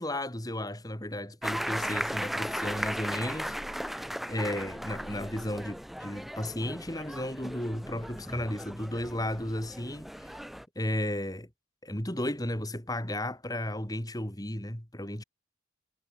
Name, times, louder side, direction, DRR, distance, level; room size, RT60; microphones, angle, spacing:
voice 1, 0.0-10.3 10.7-11.5 11.8-15.2, left 1 dB, 20° left, 3.3 m, -34 dB
sound 1, 1.4-10.6, equal, ahead, 0.8 m, -37 dB
head